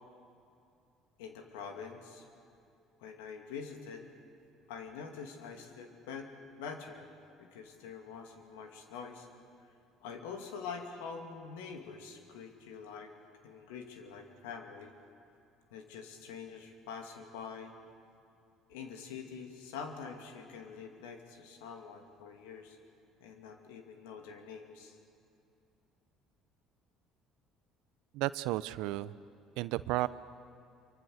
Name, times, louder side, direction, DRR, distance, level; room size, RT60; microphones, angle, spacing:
voice 1, 1.2-2.3 3.0-4.0 4.7-6.3 6.6-7.1 7.4-9.3 10.0-13.1 13.4-15.0 15.7-17.7 18.7-22.8 23.2-25.0, left 6 dB, 80° left, 4 dB, 2.5 m, -45 dB
voice 2, 28.1-29.1 29.6-30.1, right 17 dB, 75° right, 16 dB, 0.6 m, -33 dB
25.5 x 24.0 x 6.6 m, 2.6 s
hypercardioid pair, 65°, 0 cm